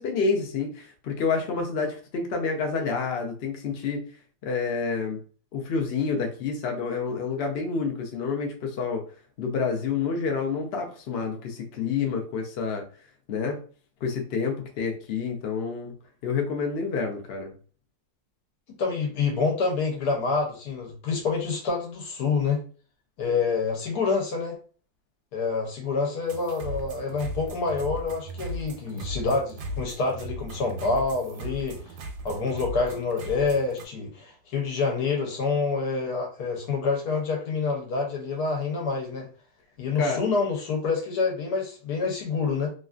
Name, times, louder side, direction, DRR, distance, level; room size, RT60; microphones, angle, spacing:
voice 1, 0.0-4.0 4.4-5.2 5.5-9.0 9.4-12.8 13.3-13.6 14.0-15.9 16.2-17.5 40.0-40.2, left 5 dB, 60° left, 2 dB, 0.7 m, -28 dB
voice 2, 18.8-22.6 23.2-24.6 25.3-31.8 32.2-39.3 39.8-42.7, left 4 dB, 80° left, 0 dB, 1.5 m, -27 dB
sound 1, 26.2-33.8, right 1 dB, 85° right, 1.2 m, -37 dB
3.1 x 2.5 x 2.4 m, 0.39 s
omnidirectional pair, 1.7 m